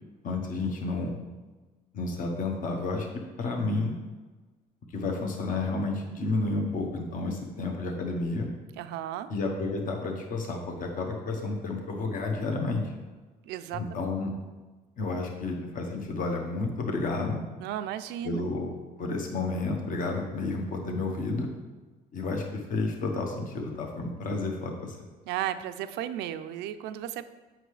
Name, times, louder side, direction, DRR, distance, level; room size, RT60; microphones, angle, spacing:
voice 1, 0.2-1.1 1.9-3.1 3.4-3.9 4.9-8.5 9.3-12.9 13.7-14.3 15.0-17.4 18.2-18.7 19.0-21.5 22.1-25.0, left 3 dB, 55° left, 1 dB, 1.2 m, -31 dB
voice 2, 8.8-9.3 13.4-14.1 17.6-18.4 25.3-27.3, right 11 dB, 85° right, 11 dB, 0.4 m, -34 dB
7.7 x 5.8 x 3.3 m, 1.3 s
cardioid pair, 110°, 17 cm